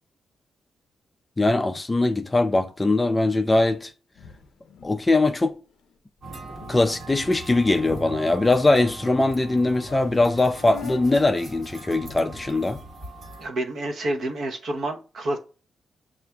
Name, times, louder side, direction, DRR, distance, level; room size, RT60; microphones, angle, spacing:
voice 1, 1.4-3.9 4.8-5.5 6.7-12.8, left 2 dB, 15° left, 0.3 m, -21 dB
sound 1, 4.1-5.0 5.3-5.4 5.7-5.9 6.2-6.3 6.5-6.8 7.4-8.4 9.1-9.2 9.5-9.6 9.9-11.0 11.9-12.9, left 7 dB, 85° left, 0.4 m, -44 dB
sound 2, 6.2-13.5, right 3 dB, 50° right, 1.1 m, -41 dB
voice 2, 13.4-15.4, right 1 dB, 65° right, 0.7 m, -28 dB
6.9 x 2.4 x 2.2 m
wide cardioid pair, 145°, 0 cm